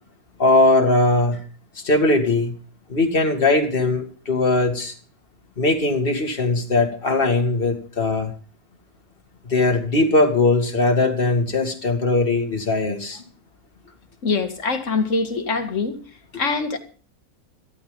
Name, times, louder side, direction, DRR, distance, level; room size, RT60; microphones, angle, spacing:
voice 1, 0.4-1.4 1.8-2.5 2.9-4.9 5.6-8.3 9.4-13.2, left 2 dB, 35° left, 2.4 m, -20 dB
voice 2, 14.2-16.0 16.4-16.8, left 4 dB, 50° left, 2.1 m, -23 dB
14.5 x 13.0 x 5.3 m
omnidirectional pair, 1.7 m